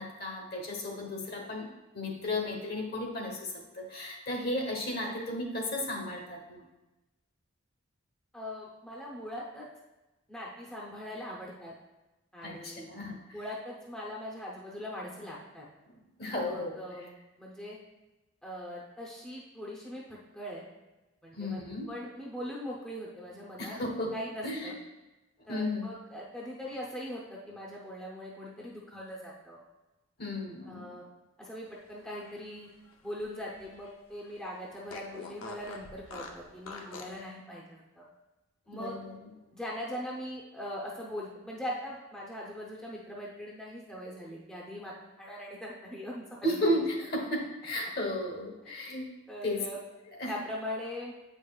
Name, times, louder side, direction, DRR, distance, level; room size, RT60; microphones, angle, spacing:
voice 1, 0.0-1.7 1.9-6.6 12.4-13.4 15.9-16.8 21.3-21.9 23.6-24.2 24.4-24.7 25.5-25.9 30.2-30.9 38.7-39.3 46.4-49.1 49.4-49.7 50.2-50.3, left 1 dB, 50° left, 1 dB, 1.1 m, -34 dB
voice 2, 8.3-9.7 10.3-11.7 12.3-12.9 13.3-15.6 16.4-17.8 18.4-20.6 21.2-21.6 21.9-23.8 24.1-24.7 25.5-29.6 30.7-31.0 31.4-32.7 33.0-38.1 38.7-39.0 39.5-46.6 49.3-49.8 50.3-51.1, equal, 5° left, -5 dB, 0.7 m, -41 dB
Fart, 31.9-33.9 34.2-34.3 34.9-37.2, left 3 dB, 80° left, 0.7 m, -46 dB
7.9 x 5.2 x 2.4 m, 1.1 s
head